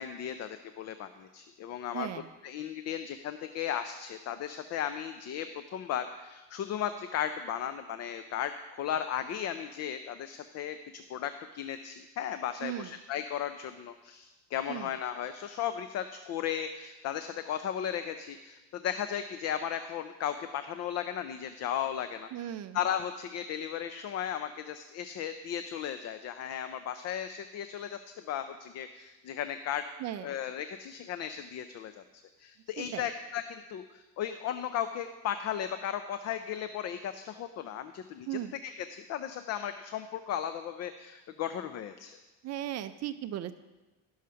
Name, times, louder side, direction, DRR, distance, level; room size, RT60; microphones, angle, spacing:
voice 1, 0.0-2.1 2.4-8.5 8.8-28.0 28.3-29.8 30.2-42.2, left 9 dB, 40° left, 10 dB, 0.5 m, -36 dB
voice 2, 1.9-2.3 12.6-12.9 14.7-14.9 22.3-22.8 30.0-30.3 32.8-33.0 38.3-38.5 42.4-43.5, right 12 dB, 45° right, 11 dB, 0.5 m, -37 dB
12.0 x 6.4 x 5.7 m, 1.2 s
cardioid pair, 150°, 39 cm